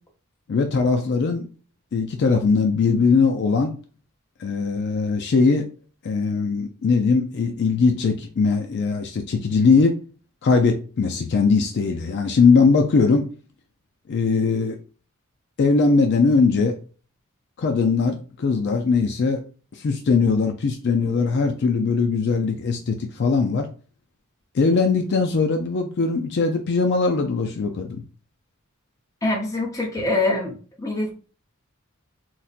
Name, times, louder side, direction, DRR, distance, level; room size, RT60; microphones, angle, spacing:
voice 1, 0.5-1.5 1.9-3.7 4.4-5.7 6.0-10.0 10.4-13.3 14.1-14.8 15.6-16.8 17.6-19.4 19.7-23.7 24.5-28.0, left 4 dB, 55° left, 4 dB, 0.4 m, -20 dB
voice 2, 29.2-31.1, left 2 dB, 15° left, -1 dB, 0.8 m, -24 dB
4.0 x 2.1 x 2.4 m, 0.37 s
head